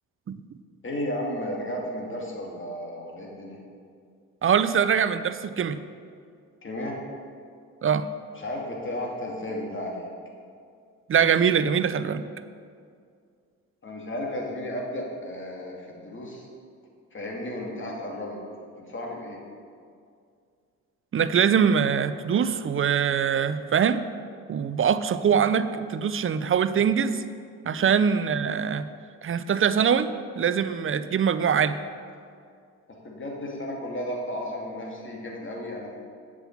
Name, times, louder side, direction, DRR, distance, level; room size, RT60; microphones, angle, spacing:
voice 1, 0.8-3.6 6.6-7.0 8.3-10.1 13.8-16.5 17.1-18.4 18.8-19.4 27.8-27.9 33.0-35.9, left 1 dB, 35° left, -2 dB, 2.6 m, -33 dB
voice 2, 4.4-5.8 7.8-8.1 11.1-12.3 21.1-24.0 24.5-27.2 27.6-28.9 29.2-31.8, right 7 dB, 35° right, 13 dB, 0.6 m, -23 dB
7.7 x 6.2 x 7.3 m, 2.3 s
supercardioid pair, 55°, 36 cm